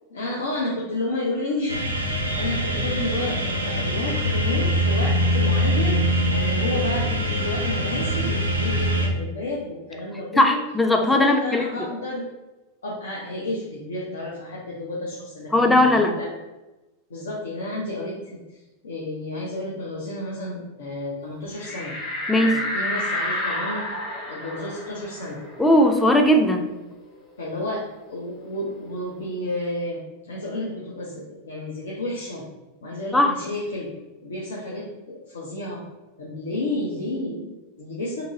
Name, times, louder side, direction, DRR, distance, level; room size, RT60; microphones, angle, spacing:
voice 1, 0.1-10.6 11.0-12.3 12.8-16.3 17.1-18.4 18.8-22.0 22.3-23.8 24.3-25.4 27.4-27.8 28.1-30.0 30.3-32.4 32.8-33.9 34.2-35.8 36.2-38.2, left 1 dB, 65° left, -4 dB, 0.5 m, -31 dB
sound 1, 1.7-9.1, equal, 80° right, 0.5 m, -23 dB
voice 2, 10.4-11.6 15.5-16.1 22.3-22.6 25.6-26.7 33.1-33.3, left 1 dB, 5° left, 3 dB, 0.4 m, -18 dB
sound 2, 21.6-26.8 27.1-27.2 27.6-29.2, left 1 dB, 30° left, 0.8 m, -31 dB
2.7 x 2.6 x 2.7 m, 1.1 s
figure-of-eight pair, 90°, 0 cm